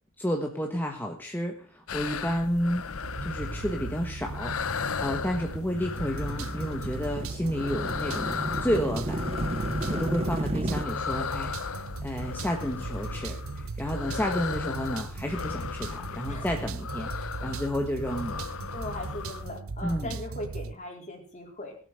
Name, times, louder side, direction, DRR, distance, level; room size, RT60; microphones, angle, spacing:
voice 1, 0.2-2.9 3.2-9.3 9.9-18.4 19.8-20.1, equal, 10° left, 2 dB, 1.4 m, -31 dB
sound 1, 1.9-19.6, left 5 dB, 80° left, 0.8 m, -36 dB
sound 2, 3.0-20.7, right 4 dB, 70° right, 0.7 m, -38 dB
sound 3, 3.9-10.9, right 1 dB, 30° right, 1.1 m, -34 dB
voice 2, 16.2-16.7 17.4-17.7 18.7-21.8, left 1 dB, 35° left, 2 dB, 4.1 m, -40 dB
18.0 x 8.1 x 6.6 m, 0.43 s
head